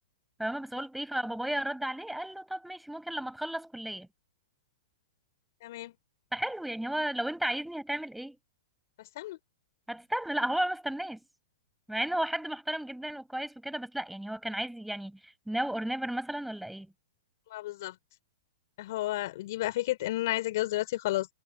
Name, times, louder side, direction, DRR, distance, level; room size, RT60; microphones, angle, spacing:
voice 1, 0.4-4.1 6.3-8.4 9.9-11.2 11.9-16.9, right 1 dB, ahead, 7.5 m, -33 dB
voice 2, 5.6-5.9 9.0-9.4 17.5-17.9 18.8-21.3, left 16 dB, 55° left, 4.4 m, -32 dB
hypercardioid pair, 110°, 2 cm